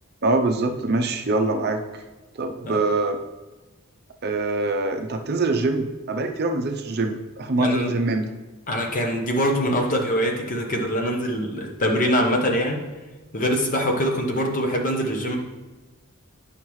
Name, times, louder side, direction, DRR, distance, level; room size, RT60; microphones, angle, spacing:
voice 1, 0.2-2.0 2.4-3.2 4.2-8.3, right 2 dB, 45° right, 5 dB, 0.5 m, -24 dB
voice 2, 7.6-7.9 8.7-12.8 13.3-15.4, equal, 35° left, 1 dB, 1.0 m, -23 dB
8.8 x 5.7 x 3.1 m, 1.1 s
head